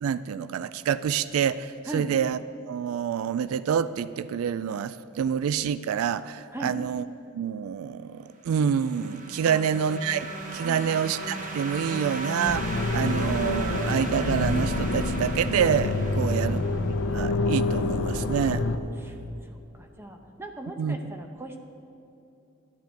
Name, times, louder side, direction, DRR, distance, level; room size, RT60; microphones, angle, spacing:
voice 1, 0.0-2.4 2.7-7.1 7.3-16.7 17.1-18.6 20.8-21.0, right 8 dB, 75° right, 17 dB, 0.3 m, -27 dB
sound 1, 8.5-17.1, right 2 dB, 40° right, 1.1 m, -36 dB
sound 2, 12.5-18.8, left 2 dB, 65° left, 0.7 m, -27 dB
voice 2, 16.2-16.8 19.0-19.1 19.8-21.6, right 1 dB, 10° right, 4 dB, 0.8 m, -39 dB
12.0 x 10.5 x 4.5 m, 2.9 s
head